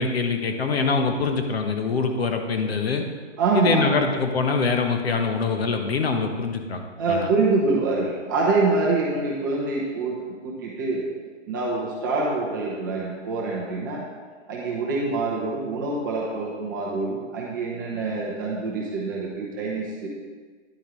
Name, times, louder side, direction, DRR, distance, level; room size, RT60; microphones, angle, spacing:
voice 1, 0.0-3.0 3.5-6.8 7.1-7.3, left 4 dB, 55° left, 5 dB, 1.1 m, -24 dB
voice 2, 3.4-3.8 7.0-10.2 10.4-11.0 11.5-14.0 14.5-20.1, right 3 dB, 15° right, -4 dB, 0.8 m, -25 dB
10.5 x 8.7 x 3.1 m, 1.5 s
hypercardioid pair, 170°, 37 cm